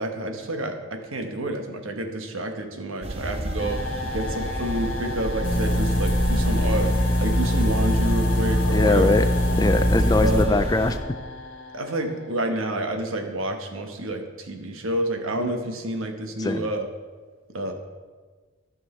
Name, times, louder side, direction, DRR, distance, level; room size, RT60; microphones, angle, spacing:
voice 1, 0.0-3.8 4.1-6.9 7.2-9.1 10.2-10.5 11.7-16.9 17.5-17.7, right 1 dB, 80° right, 5 dB, 1.1 m, -29 dB
sound 1, 3.0-11.0, right 1 dB, 30° right, 0.6 m, -31 dB
sound 2, 3.6-12.5, left 2 dB, 65° left, 1.0 m, -35 dB
sound 3, 5.4-10.4, left 1 dB, 40° left, 1.2 m, -22 dB
voice 2, 8.7-9.3 9.6-11.0 16.4-16.7, left 2 dB, 20° left, 10 dB, 0.3 m, -21 dB
12.5 x 6.3 x 4.3 m, 1.4 s
head